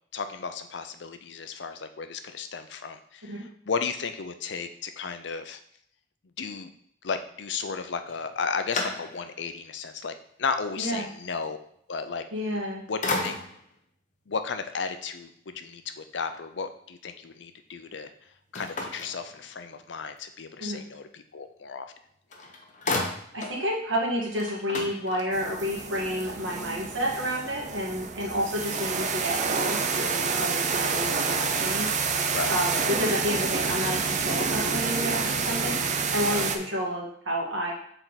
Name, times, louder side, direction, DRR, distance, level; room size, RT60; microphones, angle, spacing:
voice 1, 0.1-5.6 6.4-6.7 7.0-11.6 11.9-12.2 12.9-13.4 14.3-18.1 18.5-21.9 32.3-32.5 36.3-36.4, left 5 dB, 65° left, 8 dB, 0.6 m, -34 dB
sound 1, 8.1-9.5 10.0-10.1 12.4-12.7 13.0-13.8 18.5-19.8 21.9-22.0 22.3-23.6 24.0-24.1 24.3-25.6, left 3 dB, 40° left, 0.9 m, -33 dB
voice 2, 10.8-11.1 12.3-12.8 20.6-20.8 23.3-31.9 32.5-35.8 36.1-37.7, equal, 85° right, -2 dB, 1.9 m, -30 dB
sound 2, 25.3-36.6, right 5 dB, 40° right, 0.6 m, -28 dB
6.6 x 4.4 x 4.1 m, 0.67 s
head